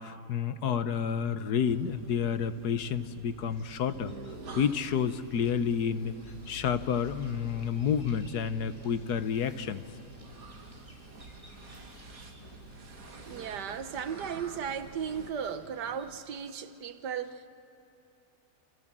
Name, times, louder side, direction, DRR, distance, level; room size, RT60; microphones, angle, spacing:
voice 1, 0.0-4.1 4.6-6.1 6.5-9.8, left 7 dB, 75° left, 1.4 m, -30 dB
sound 1, 1.6-15.3, right 3 dB, 60° right, 2.1 m, -48 dB
Bird vocalization bird call bird song, 3.5-16.6, right 1 dB, 20° right, 5.3 m, -61 dB
sound 2, 4.3-16.2, left 3 dB, 50° left, 3.0 m, -57 dB
voice 2, 13.3-17.5, right 7 dB, 85° right, 1.7 m, -36 dB
28.5 x 28.0 x 7.5 m
omnidirectional pair, 1.8 m